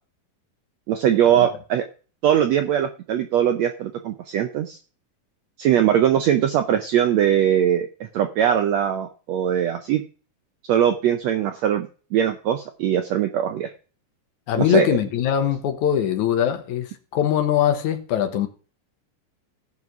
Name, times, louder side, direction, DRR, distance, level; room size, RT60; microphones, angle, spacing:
voice 1, 0.9-1.8 2.2-4.8 5.6-10.0 10.7-13.7 14.6-14.9, right 10 dB, 75° right, 1.6 m, -21 dB
voice 2, 14.5-18.5, left 10 dB, 70° left, 2.3 m, -22 dB
15.5 x 5.6 x 6.0 m
omnidirectional pair, 4.0 m